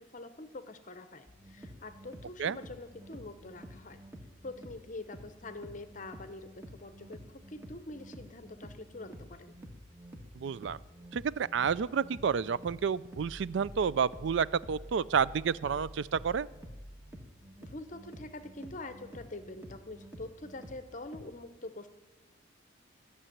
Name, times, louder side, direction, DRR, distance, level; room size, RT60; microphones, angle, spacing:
voice 1, 0.0-4.0 4.4-9.6 17.6-21.9, left 2 dB, 40° left, 10 dB, 0.8 m, -45 dB
sound 1, 1.3-21.2, equal, 15° right, 1.5 m, -50 dB
voice 2, 10.4-10.8 11.1-16.5, right 6 dB, 65° right, 19 dB, 0.4 m, -30 dB
14.0 x 6.8 x 9.9 m, 1.2 s
head